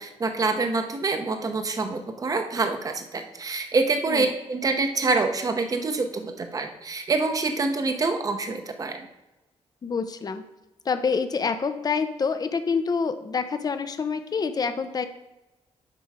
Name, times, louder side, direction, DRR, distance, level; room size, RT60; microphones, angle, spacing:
voice 1, 0.0-9.1, right 3 dB, 30° right, 6 dB, 0.8 m, -26 dB
voice 2, 9.8-10.4 10.8-15.1, left 5 dB, 35° left, 9 dB, 0.6 m, -27 dB
7.5 x 5.4 x 4.9 m, 1.0 s
cardioid pair, 125°, 12 cm